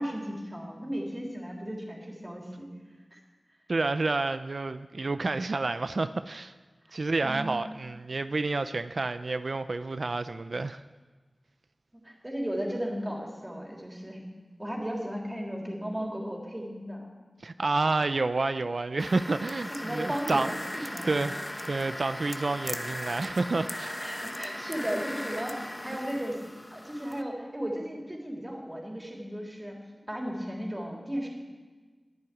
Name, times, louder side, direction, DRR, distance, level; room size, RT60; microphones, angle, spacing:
voice 1, 0.0-2.7 3.1-3.2 6.9-7.7 12.0-14.2 14.6-17.1 19.7-21.2 24.0-26.4 26.7-29.8 30.1-31.3, equal, 20° right, -1 dB, 3.5 m, -35 dB
voice 2, 3.7-6.5 6.9-10.8 17.4-20.5 20.8-24.0, right 3 dB, 70° right, 11 dB, 0.4 m, -29 dB
sound 1, 19.0-27.2, left 1 dB, 15° left, 0.9 m, -38 dB
11.0 x 10.5 x 9.9 m, 1.4 s
wide cardioid pair, 70°, 0 cm